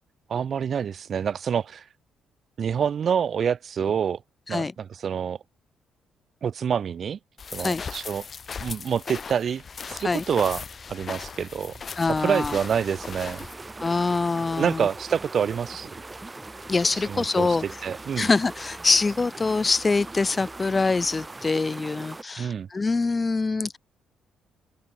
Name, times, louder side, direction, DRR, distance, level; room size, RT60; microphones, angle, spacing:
voice 1, 0.3-1.8 2.6-4.2 4.5-5.4 6.4-7.2 7.5-8.2 8.6-9.6 9.9-11.7 12.2-13.4 14.6-15.9 17.1-17.5 17.8-18.3 22.4-22.7, right 7 dB, 55° right, 0.4 m, -27 dB
sound 1, 7.4-13.5, left 6 dB, 40° left, 0.8 m, -38 dB
sound 2, 9.7-21.5, equal, ahead, 3.9 m, -52 dB
voice 2, 12.0-12.6 13.8-14.9 16.6-17.8 18.2-23.8, left 3 dB, 25° left, 0.4 m, -24 dB
sound 3, 12.1-22.2, right 2 dB, 20° right, 0.8 m, -41 dB
open air
cardioid pair, 90°, 0 cm